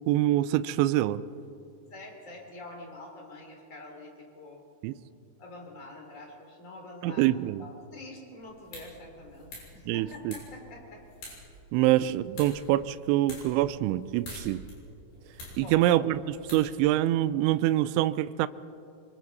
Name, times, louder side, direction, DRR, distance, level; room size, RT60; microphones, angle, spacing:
voice 1, 0.1-1.2 4.8-4.9 7.0-7.6 9.9-10.3 11.7-14.6 15.6-18.5, right 14 dB, 85° right, 14 dB, 2.6 m, -25 dB
voice 2, 1.9-4.6 5.4-7.3 7.6-11.0 11.8-11.9 15.5-16.0, left 2 dB, 20° left, 0 dB, 2.8 m, -46 dB
sound 1, 8.4-17.3, left 1 dB, 50° left, 8.5 m, -48 dB
26.0 x 25.0 x 4.1 m, 2.5 s
omnidirectional pair, 5.9 m